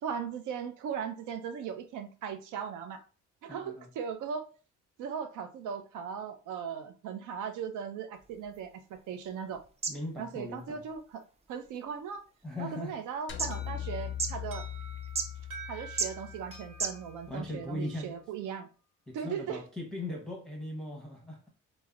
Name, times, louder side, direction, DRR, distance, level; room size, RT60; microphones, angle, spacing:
voice 1, 0.0-3.0 3.4-4.5 5.0-9.6 10.2-11.2 11.5-12.3 12.6-14.7 15.7-18.7 19.1-19.6, right 7 dB, 80° right, 0.5 m, -38 dB
voice 2, 3.5-3.9 9.9-10.8 12.4-13.0 17.3-18.1 19.1-21.5, left 1 dB, ahead, 0.8 m, -39 dB
sound 1, 8.1-17.4, right 4 dB, 20° right, 0.4 m, -41 dB
sound 2, 13.3-17.7, left 11 dB, 40° left, 0.4 m, -41 dB
Alarm, 13.5-18.3, right 3 dB, 45° right, 1.3 m, -49 dB
3.4 x 2.0 x 2.3 m
cardioid pair, 90°, 30 cm